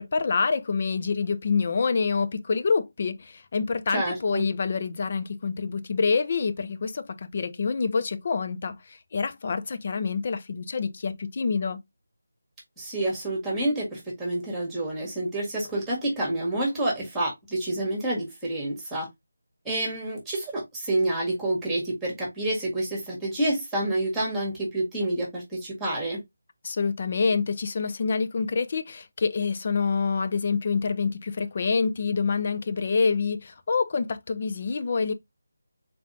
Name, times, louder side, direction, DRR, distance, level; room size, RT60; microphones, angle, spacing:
voice 1, 0.0-11.8 26.6-35.1, left 5 dB, 35° left, 0.5 m, -27 dB
voice 2, 3.9-4.4 12.8-19.1 19.6-26.2, right 1 dB, 5° right, 1.6 m, -28 dB
4.1 x 3.5 x 2.6 m
figure-of-eight pair, 175°, 0 cm